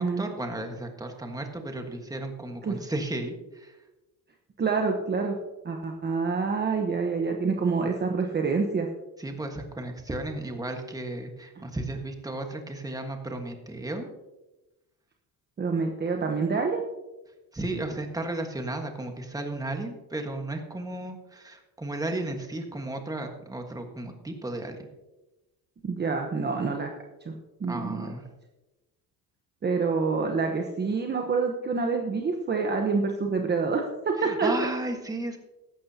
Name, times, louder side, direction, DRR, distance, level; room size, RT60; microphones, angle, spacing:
voice 1, 0.0-3.7 9.2-14.1 17.5-24.9 27.7-28.2 34.2-35.4, right 2 dB, 10° right, 4 dB, 1.5 m, -34 dB
voice 2, 4.6-5.4 5.6-8.9 11.6-11.7 15.6-16.9 25.8-26.9 27.2-27.3 27.6-28.1 29.6-34.7, right 4 dB, 25° right, 3 dB, 1.1 m, -27 dB
15.0 x 12.0 x 2.8 m, 1.0 s
cardioid pair, 135°, 38 cm